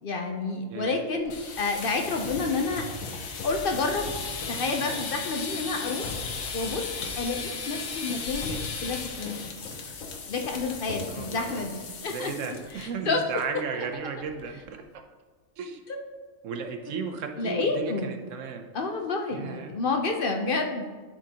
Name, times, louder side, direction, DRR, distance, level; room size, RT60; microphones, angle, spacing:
voice 1, 0.0-2.8 3.4-4.1 4.5-6.2 6.5-6.9 7.2-8.5 8.8-9.4 10.3-12.3 12.8-13.2 13.5-13.6 15.9-16.0 17.4-18.1 18.7-20.8, left 3 dB, 55° left, 3 dB, 0.7 m, -29 dB
voice 2, 0.7-1.1 11.1-11.6 12.1-15.0 15.6-15.8 16.4-18.7 19.3-19.7, right 6 dB, 70° right, 5 dB, 1.0 m, -35 dB
sound 1, 1.2-12.8 13.1-13.4 13.7-13.8 14.2-14.6, left 4 dB, 85° left, 1.2 m, -36 dB
11.0 x 3.7 x 2.8 m, 1.4 s
omnidirectional pair, 1.4 m